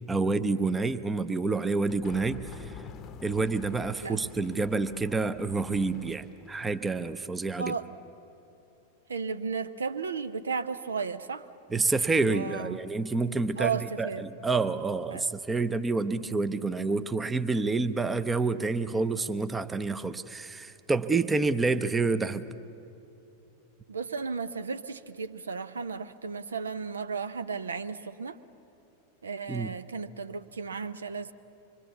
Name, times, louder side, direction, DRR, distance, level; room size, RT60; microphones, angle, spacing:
voice 1, 0.1-2.8 3.2-7.7 11.7-22.5 29.5-29.7, right 3 dB, 10° right, 12 dB, 0.7 m, -28 dB
sound 1, 1.9-6.9, left 6 dB, 30° left, 0.8 m, -47 dB
voice 2, 9.1-11.5 12.1-12.8 13.6-14.2 15.1-15.3 23.9-28.4 29.2-31.3, right 5 dB, 70° right, 12 dB, 0.7 m, -34 dB
26.0 x 23.0 x 7.0 m, 2.8 s
figure-of-eight pair, 90°, 0 cm